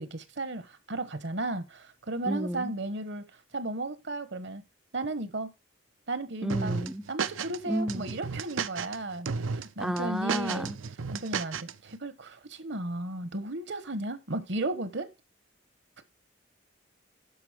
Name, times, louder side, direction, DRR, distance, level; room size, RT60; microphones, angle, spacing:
voice 1, 0.0-3.2 3.5-4.6 4.9-5.5 6.1-6.7 7.1-10.7 11.1-15.1 16.0-16.1, right 2 dB, 60° right, 1.1 m, -34 dB
voice 2, 2.2-2.7 6.4-7.0 7.7-8.2 9.8-10.8, equal, 5° right, 0.4 m, -32 dB
sound 1, 6.5-7.6 7.9-9.0 9.3-9.6 10.0-11.7, right 5 dB, 75° right, 0.6 m, -33 dB
11.5 x 5.2 x 5.0 m
head